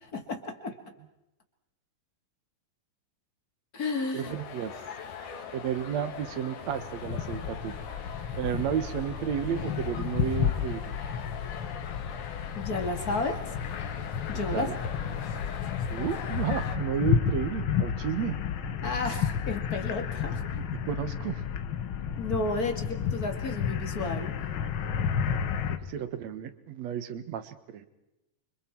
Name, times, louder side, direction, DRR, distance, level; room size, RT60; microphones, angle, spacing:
voice 1, 0.1-0.7 3.7-4.3 12.5-13.4 14.3-14.7 18.8-20.4 22.2-24.4, left 3 dB, 30° left, 4 dB, 2.2 m, -32 dB
voice 2, 4.1-4.7 5.5-7.8 8.4-10.9 14.5-14.7 15.9-18.4 20.5-21.4 25.8-27.9, right 9 dB, 60° right, 11 dB, 2.3 m, -32 dB
sound 1, 4.2-16.8, left 7 dB, 65° left, 3.3 m, -42 dB
sound 2, 6.7-25.8, left 7 dB, 85° left, 1.1 m, -32 dB
29.5 x 25.5 x 4.6 m, 0.92 s
omnidirectional pair, 4.0 m